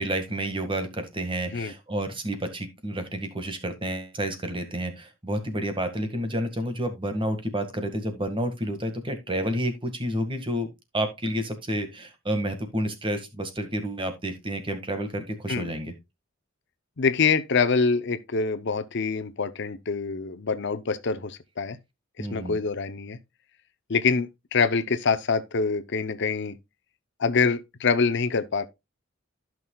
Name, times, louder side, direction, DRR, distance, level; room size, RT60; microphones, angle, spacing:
voice 1, 0.0-10.7 10.9-15.9 22.2-22.6, right 1 dB, 25° right, 1.8 m, -30 dB
voice 2, 17.0-21.8 22.2-23.2 23.9-26.6 27.2-28.7, left 5 dB, 60° left, 0.7 m, -25 dB
14.5 x 6.2 x 2.3 m
head